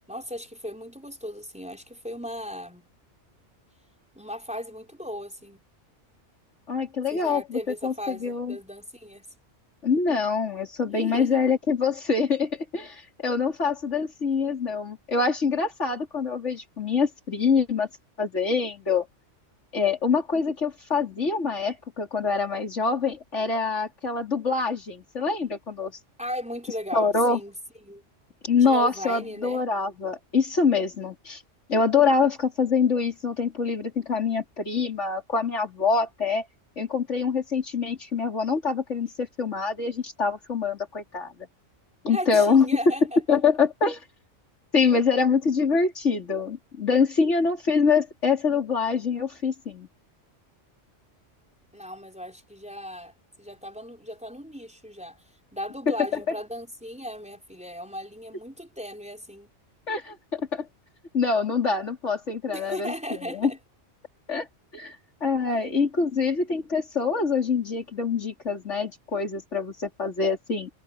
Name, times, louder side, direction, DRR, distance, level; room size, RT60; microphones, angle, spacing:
voice 1, 0.0-2.9 4.1-5.6 7.1-9.3 10.8-11.5 26.2-28.0 28.6-29.6 42.1-43.2 51.7-55.2 55.5-59.5 62.5-63.6, equal, 5° right, 4.3 m, -37 dB
voice 2, 6.7-8.6 9.8-17.9 18.2-19.1 19.7-25.9 26.9-27.4 28.4-31.4 31.7-36.4 36.8-41.5 42.0-42.7 43.3-44.0 44.7-49.9 59.9-60.7 61.1-63.5 64.3-64.5 64.7-65.0 65.2-70.7, left 5 dB, 75° left, 3.7 m, -25 dB
omnidirectional pair, 1.2 m